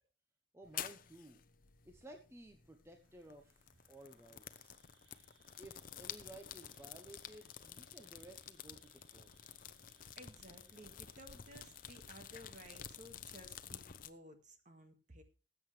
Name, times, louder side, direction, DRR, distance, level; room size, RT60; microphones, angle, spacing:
voice 1, 0.5-1.4 1.8-4.8 5.6-9.8, right 1 dB, 15° right, 4 dB, 1.0 m, -56 dB
sound 1, 0.6-14.1, left 9 dB, 50° left, 0.7 m, -51 dB
Insect, 2.9-13.7, right 5 dB, 80° right, 2.4 m, -73 dB
voice 2, 10.2-15.2, right 1 dB, 40° right, 6 dB, 2.0 m, -56 dB
19.0 x 8.0 x 3.3 m, 0.33 s
head